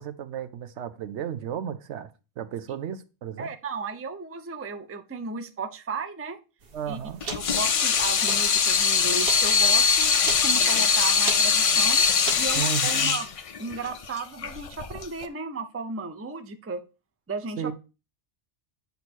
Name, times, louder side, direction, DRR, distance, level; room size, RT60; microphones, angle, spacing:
voice 1, 0.0-2.1 2.4-3.5 6.7-7.2 12.5-13.2 17.6-17.7, right 9 dB, 80° right, 1.0 m, -33 dB
voice 2, 3.4-6.4 6.8-7.0 7.3-12.1 12.4-13.3 13.6-16.8 17.3-17.7, right 4 dB, 20° right, 0.4 m, -34 dB
sound 1, 6.6-12.6, right 4 dB, 55° right, 1.1 m, -39 dB
Water tap faucet / Sink (filling or washing), 7.2-15.3, left 6 dB, 50° left, 0.4 m, -22 dB
8.2 x 2.8 x 6.1 m
omnidirectional pair, 1.2 m